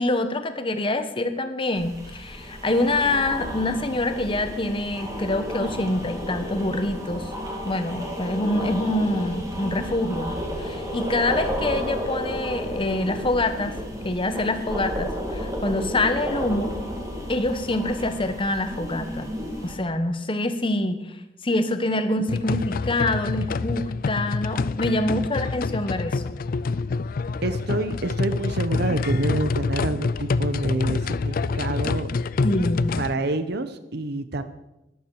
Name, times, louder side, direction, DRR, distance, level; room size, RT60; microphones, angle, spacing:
voice 1, 0.0-7.3 7.6-13.8 14.0-16.8 17.3-19.3 19.6-21.2 21.4-26.4 32.4-33.1, left 2 dB, 30° left, 9 dB, 1.1 m, -26 dB
sound 1, 1.7-19.7, equal, 20° right, 2.2 m, -32 dB
sound 2, 22.3-33.1, left 4 dB, 50° left, 0.4 m, -26 dB
voice 2, 27.4-32.1 33.0-34.4, right 2 dB, 60° right, 11 dB, 1.0 m, -27 dB
13.0 x 11.5 x 4.8 m, 0.94 s
head